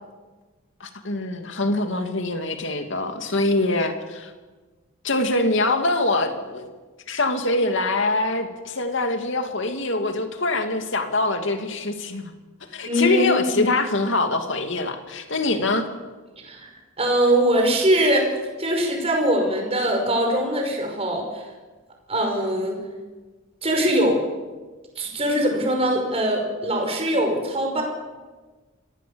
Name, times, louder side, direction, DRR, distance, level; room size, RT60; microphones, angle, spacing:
voice 1, 0.8-4.3 5.0-6.7 7.1-12.3 12.7-15.9, left 2 dB, 60° left, 5 dB, 2.7 m, -24 dB
voice 2, 12.8-13.6 16.4-16.7 17.0-18.3 18.6-21.4 22.1-22.8 23.6-24.2 25.0-27.8, right 1 dB, 30° right, 2 dB, 5.4 m, -22 dB
26.5 x 19.0 x 7.2 m, 1.3 s
head